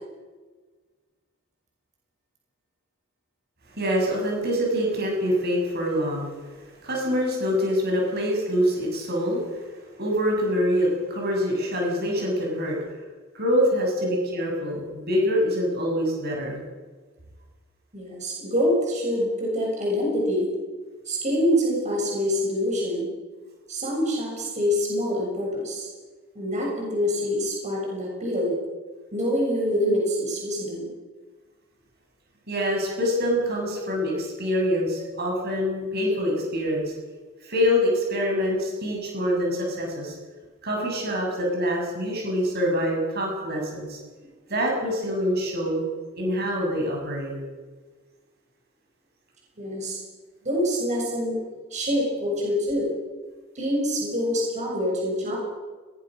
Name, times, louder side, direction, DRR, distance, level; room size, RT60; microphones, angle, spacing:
voice 1, 3.8-13.0 13.3-16.6 32.5-36.9 37.4-40.1 40.6-44.0 44.5-45.8 46.2-47.4, equal, 50° right, -1 dB, 7.3 m, -25 dB
voice 2, 17.9-20.5 21.1-23.1 23.7-25.9 26.4-28.6 29.1-30.9 49.6-50.0 50.4-51.4 51.7-52.9 53.6-55.4, equal, 35° right, -2 dB, 7.3 m, -25 dB
22.5 x 20.0 x 6.4 m, 1.3 s
head